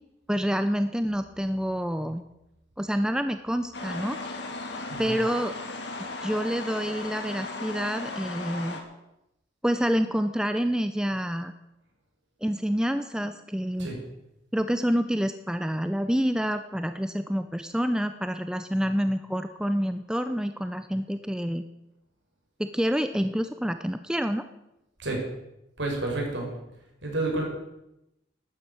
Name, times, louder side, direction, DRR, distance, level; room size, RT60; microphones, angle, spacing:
voice 1, 0.3-2.2 2.8-4.2 5.0-5.5 6.0-8.8 9.6-11.5 12.4-13.9 14.5-21.6 22.6-24.4, equal, 5° right, 9 dB, 0.5 m, -27 dB
sound 1, 3.7-8.8, left 3 dB, 60° left, 2.6 m, -36 dB
voice 2, 25.8-26.5 27.0-27.4, right 2 dB, 65° right, 0 dB, 5.5 m, -29 dB
12.5 x 9.8 x 9.0 m, 0.89 s
head